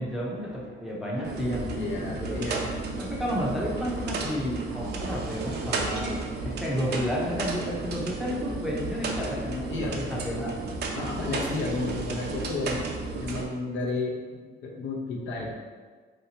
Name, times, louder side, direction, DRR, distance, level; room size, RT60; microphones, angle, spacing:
voice 1, 0.0-2.6 3.0-6.1 6.4-10.5, equal, ahead, -5 dB, 0.6 m, -32 dB
sound 1, 1.2-13.4, right 3 dB, 55° right, 0.5 m, -33 dB
voice 2, 1.7-2.7 9.7-10.0 11.0-12.8 13.2-15.6, left 3 dB, 75° left, -2 dB, 0.8 m, -32 dB
3.2 x 2.8 x 2.8 m, 1.5 s
cardioid pair, 90°, 20 cm